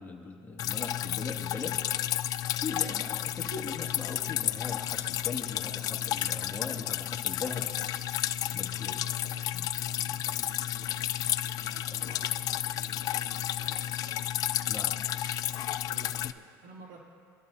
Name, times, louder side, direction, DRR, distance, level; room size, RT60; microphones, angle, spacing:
voice 1, 0.0-1.8 2.6-7.7 8.5-8.9 9.5-9.6 10.1-10.2 12.0-12.1 14.7-15.0, left 4 dB, 25° left, 0 dB, 2.3 m, -40 dB
Drip, 0.6-16.3, left 12 dB, 50° left, 0.4 m, -32 dB
voice 2, 2.8-3.5 8.7-9.4 9.8-14.3 15.5-15.6 15.9-17.0, right 3 dB, 75° right, -3 dB, 3.3 m, -53 dB
25.0 x 12.0 x 2.8 m, 2.2 s
supercardioid pair, 100°, 8 cm